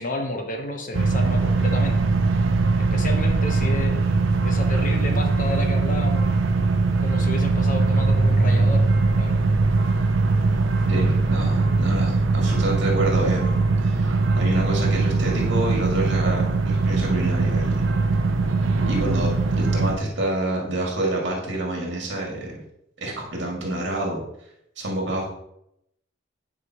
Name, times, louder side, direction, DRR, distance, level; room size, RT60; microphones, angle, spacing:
voice 1, 0.0-2.0 2.9-3.9 4.4-6.3 7.0-8.8 9.1-9.5, left 2 dB, 45° left, 4 dB, 0.9 m, -31 dB
sound 1, 0.9-20.0, right 3 dB, 85° right, 0.7 m, -21 dB
voice 2, 10.9-17.9 18.9-22.6 23.0-24.2 24.8-25.3, right 1 dB, 65° right, -2 dB, 2.2 m, -27 dB
9.7 x 5.0 x 3.0 m, 0.77 s
head